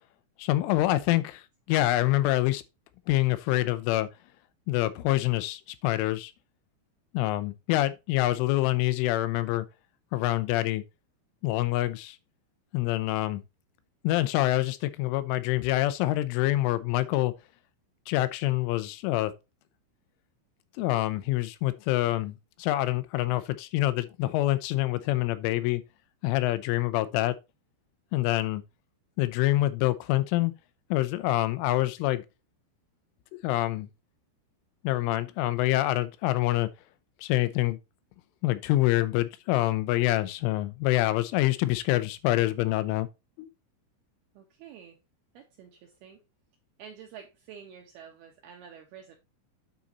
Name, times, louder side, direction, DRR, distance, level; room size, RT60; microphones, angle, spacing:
voice 1, 0.4-1.4 1.7-2.6 3.1-4.1 4.7-6.3 7.1-9.7 10.1-10.8 11.4-12.2 12.7-13.4 14.0-17.3 18.1-19.3 20.8-25.8 26.2-27.4 28.1-28.6 29.2-30.5 30.9-32.2 33.3-33.9 34.8-36.7 37.2-37.8 38.4-43.1 43.4-43.5, left 16 dB, 85° left, 3.2 m, -26 dB
voice 2, 44.3-45.0 45.3-46.2 46.8-49.2, right 8 dB, 80° right, 2.3 m, -48 dB
9.0 x 4.1 x 4.2 m
omnidirectional pair, 5.6 m